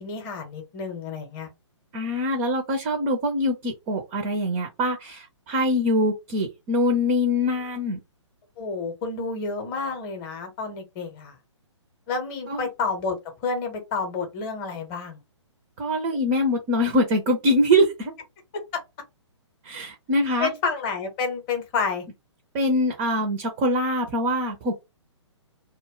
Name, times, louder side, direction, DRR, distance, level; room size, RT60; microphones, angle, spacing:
voice 1, 0.0-1.5 8.6-11.3 12.1-13.2 13.4-15.2 18.5-18.8 20.4-22.0, left 4 dB, 25° left, 0.7 m, -29 dB
voice 2, 1.9-8.0 12.5-12.7 15.8-18.1 19.6-20.5 22.5-24.7, left 1 dB, 20° right, 0.4 m, -23 dB
2.2 x 2.0 x 3.5 m
figure-of-eight pair, 125°, 16 cm